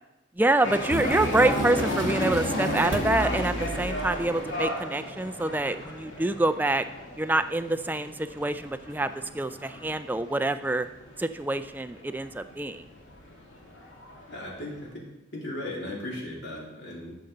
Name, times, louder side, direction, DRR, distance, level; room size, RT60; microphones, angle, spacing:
voice 1, 0.4-6.8 7.2-10.9 11.2-12.8, right 2 dB, 10° right, 11 dB, 0.3 m, -26 dB
sound 1, 0.6-14.9, left 1 dB, 80° left, 2.3 m, -34 dB
sound 2, 0.9-4.6, right 1 dB, 80° right, 1.0 m, -33 dB
voice 2, 14.3-15.0 15.3-17.1, left 1 dB, 60° left, -3 dB, 3.0 m, -36 dB
14.5 x 6.8 x 3.9 m, 0.94 s
head